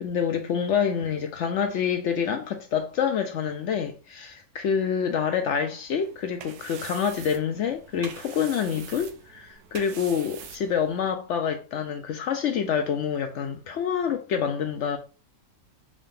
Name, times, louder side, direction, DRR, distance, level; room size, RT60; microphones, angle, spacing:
voice 1, 0.0-15.0, left 7 dB, 65° left, 0.7 m, -27 dB
sound 1, 6.0-11.1, right 8 dB, 85° right, 1.1 m, -44 dB
3.6 x 2.7 x 3.6 m
omnidirectional pair, 1.6 m